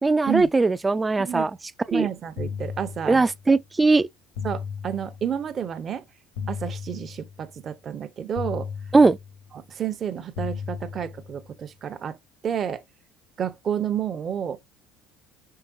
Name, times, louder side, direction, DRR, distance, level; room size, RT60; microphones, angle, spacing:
voice 1, 0.0-1.5 1.9-2.1 3.1-4.1 8.9-9.2, right 3 dB, 15° right, 0.3 m, -19 dB
voice 2, 1.2-1.5 1.9-3.3 4.4-6.0 6.5-8.7 9.5-12.2 12.4-12.8 13.4-14.6, right 9 dB, 40° right, 0.7 m, -30 dB
sound 1, 2.4-3.5 4.4-5.5 6.4-7.5 8.4-9.5 10.4-11.5, left 6 dB, 85° left, 1.4 m, -35 dB
5.7 x 3.4 x 2.5 m
supercardioid pair, 90°, 0 cm